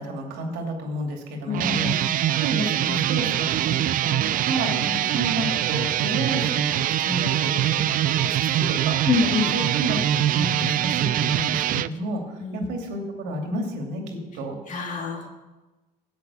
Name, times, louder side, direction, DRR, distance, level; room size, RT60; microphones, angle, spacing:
voice 1, 0.0-3.7 4.0-9.0 9.5-14.6, equal, 85° right, 2 dB, 2.6 m, -31 dB
voice 2, 1.5-2.0 4.8-5.0 9.1-9.6 12.4-12.7 14.7-15.3, left 5 dB, 45° left, 2 dB, 2.2 m, -26 dB
sound 1, 1.5-11.9, right 12 dB, 55° right, 0.4 m, -23 dB
10.5 x 8.2 x 7.0 m, 1.1 s
cardioid pair, 110°, 17 cm